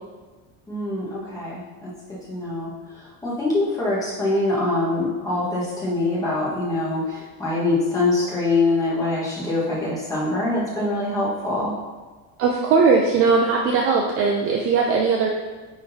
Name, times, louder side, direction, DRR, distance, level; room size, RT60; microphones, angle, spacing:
voice 1, 0.7-11.7, left 2 dB, 10° left, -8 dB, 1.4 m, -24 dB
voice 2, 12.4-15.3, right 4 dB, 35° right, 1 dB, 0.4 m, -19 dB
9.7 x 3.9 x 2.7 m, 1.3 s
cardioid pair, 170°, 39 cm